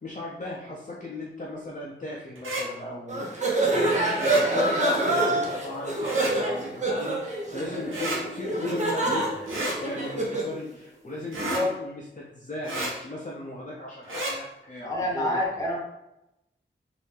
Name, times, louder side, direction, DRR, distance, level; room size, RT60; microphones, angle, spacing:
voice 1, 0.0-15.5, left 2 dB, 40° left, -4 dB, 0.6 m, -37 dB
sound 1, 2.4-2.6 4.2-4.4 6.0-6.3 7.9-8.2 9.5-9.8 11.3-11.6 12.6-12.9 14.0-14.3, right 1 dB, 80° right, 0.9 m, -30 dB
sound 2, 3.1-10.5, right 2 dB, 35° right, 0.7 m, -26 dB
voice 2, 14.8-15.8, left 1 dB, 15° left, -3 dB, 1.0 m, -27 dB
3.2 x 2.6 x 3.2 m, 0.89 s
wide cardioid pair, 80°, 21 cm